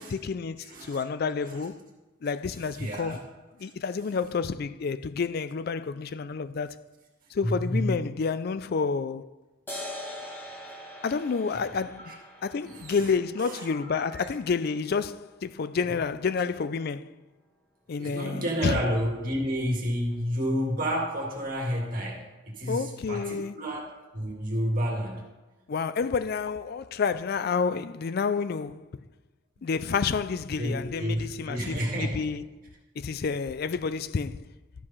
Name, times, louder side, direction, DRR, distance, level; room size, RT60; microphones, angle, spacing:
voice 1, 0.0-1.8 2.2-3.2 3.6-6.8 7.3-9.3 11.0-17.1 17.9-18.8 22.7-23.6 25.7-28.9 29.6-32.4 33.0-34.5, left 5 dB, 50° left, 0.4 m, -29 dB
voice 2, 0.7-1.0 1.4-1.6 2.8-3.2 3.6-3.7 7.4-8.0 12.0-12.2 12.7-13.1 13.4-14.3 18.0-23.8 24.1-25.3 30.6-32.3, equal, 45° right, 2.0 m, -30 dB
sound 1, 9.7-16.6, left 1 dB, 10° left, 1.8 m, -44 dB
12.5 x 4.9 x 5.6 m
head